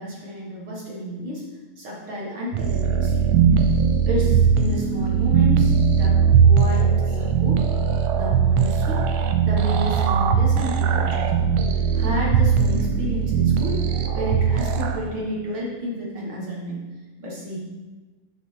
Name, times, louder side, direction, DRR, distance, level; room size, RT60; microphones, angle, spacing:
voice 1, 0.0-1.4 1.8-3.3 4.1-7.6 8.1-9.0 9.4-13.9 14.1-16.8 17.2-17.7, equal, 50° right, -4 dB, 1.7 m, -31 dB
sound 1, 2.5-15.0, right 7 dB, 85° right, 1.5 m, -19 dB
6.5 x 4.8 x 6.5 m, 1.2 s
omnidirectional pair, 3.6 m